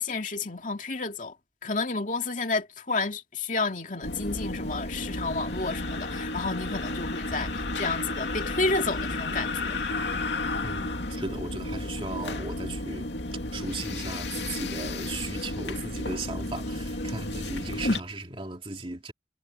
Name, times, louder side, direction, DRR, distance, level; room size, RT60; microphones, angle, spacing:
voice 1, 0.0-1.3 1.6-9.8, left 3 dB, 45° left, 2.5 m, -31 dB
sound 1, 4.0-18.0, left 2 dB, 75° left, 2.5 m, -32 dB
voice 2, 10.6-13.1 13.5-19.1, right 2 dB, 30° right, 2.6 m, -37 dB
head